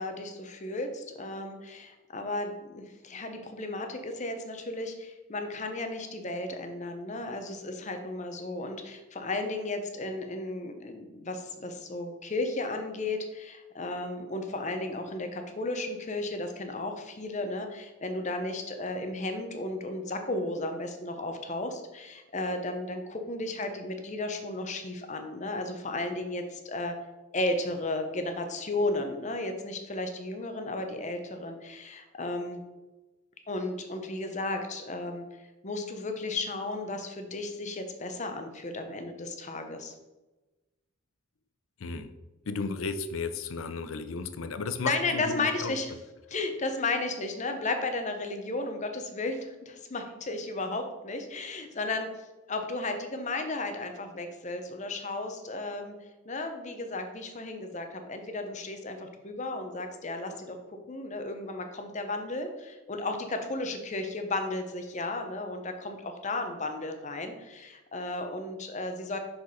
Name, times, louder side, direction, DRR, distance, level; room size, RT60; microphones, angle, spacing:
voice 1, 0.0-26.9 27.3-32.6 33.5-39.9 44.8-45.9 46.3-52.1 52.5-55.9 56.3-60.6 60.9-69.2, left 2 dB, 35° left, 6 dB, 0.8 m, -34 dB
voice 2, 42.5-45.7, left 4 dB, 85° left, 10 dB, 0.6 m, -34 dB
6.0 x 5.2 x 4.1 m, 1.1 s
head